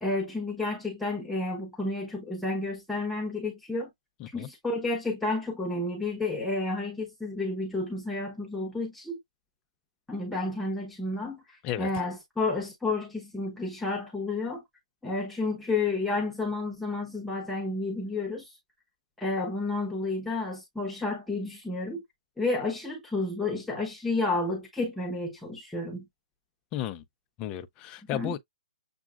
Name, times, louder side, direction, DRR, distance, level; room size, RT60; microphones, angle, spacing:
voice 1, 0.0-3.9 4.3-9.2 10.1-11.4 11.8-14.6 15.0-18.5 19.2-22.0 22.4-26.0 28.1-28.3, left 2 dB, 5° left, 1.0 m, -31 dB
voice 2, 26.7-27.0 27.4-28.4, left 11 dB, 20° left, 0.5 m, -33 dB
7.1 x 2.4 x 2.4 m
hypercardioid pair, 155°, 4 cm